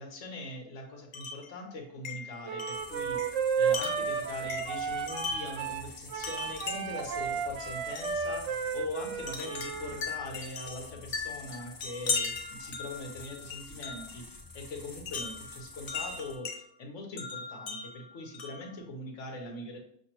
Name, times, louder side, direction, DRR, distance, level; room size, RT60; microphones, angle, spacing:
voice 1, 0.0-19.8, left 2 dB, 80° left, 2 dB, 1.3 m, -42 dB
Wind chime, 1.1-1.5 2.0-5.6 6.2-7.1 7.9-8.2 9.3-14.2 15.1-16.6 17.2-18.7, left 4 dB, 50° left, 0.7 m, -38 dB
Wind instrument woodwind instrument, 2.5-10.0, right 6 dB, 85° right, 0.9 m, -33 dB
sound 1, 2.7-16.4, left 3 dB, 35° left, 0.3 m, -49 dB
6.3 x 2.7 x 2.9 m, 0.70 s
omnidirectional pair, 1.2 m